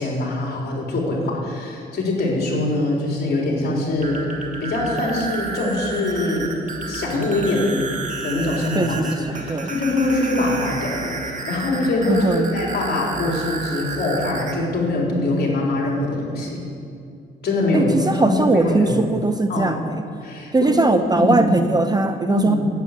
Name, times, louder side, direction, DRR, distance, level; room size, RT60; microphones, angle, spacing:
voice 1, 0.0-4.3 4.6-7.8 8.2-16.7 17.4-18.9 19.5-19.8 20.2-20.8 21.0-21.5 22.2-22.6, left 2 dB, 55° left, -2 dB, 4.1 m, -23 dB
sound 1, 3.9-14.5, right 4 dB, 40° right, 2.0 m, -31 dB
voice 2, 8.7-9.7 12.1-12.5 17.7-20.0 20.5-22.6, right 2 dB, 20° right, 8 dB, 0.7 m, -20 dB
11.5 x 8.3 x 9.2 m, 2.5 s
cardioid pair, 90°, 20 cm